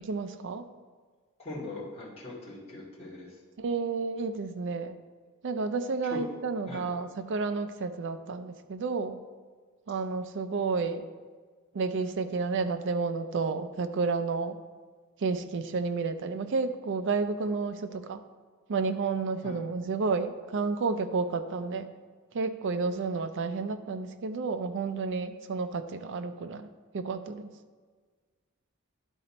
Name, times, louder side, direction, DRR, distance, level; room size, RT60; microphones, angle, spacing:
voice 1, 0.0-0.7 3.6-5.0 5.4-9.2 9.9-11.0 11.7-14.6 15.2-18.2 18.7-21.9 22.3-27.5, right 4 dB, 60° right, 9 dB, 0.5 m, -31 dB
voice 2, 1.4-3.4 6.1-6.2 6.7-6.8 19.4-19.6, left 2 dB, 30° left, -9 dB, 1.9 m, -41 dB
11.0 x 3.9 x 4.3 m, 1.5 s
head